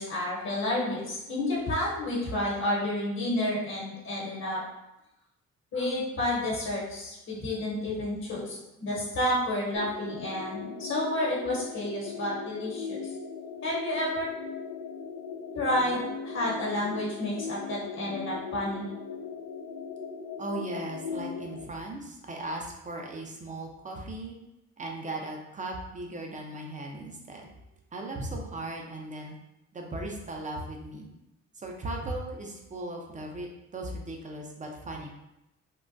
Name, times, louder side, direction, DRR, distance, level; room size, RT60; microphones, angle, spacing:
voice 1, 0.0-4.6 5.7-13.0 13.6-14.3 15.5-18.9, left 1 dB, 60° left, -5 dB, 1.0 m, -30 dB
sound 1, 9.8-21.6, left 5 dB, 75° left, 0.5 m, -39 dB
voice 2, 20.4-24.4 24.8-27.5 27.9-29.3 29.7-31.1 31.5-35.1, right 2 dB, 25° right, 1 dB, 0.6 m, -37 dB
3.7 x 2.1 x 2.5 m, 0.90 s
cardioid pair, 90°, 30 cm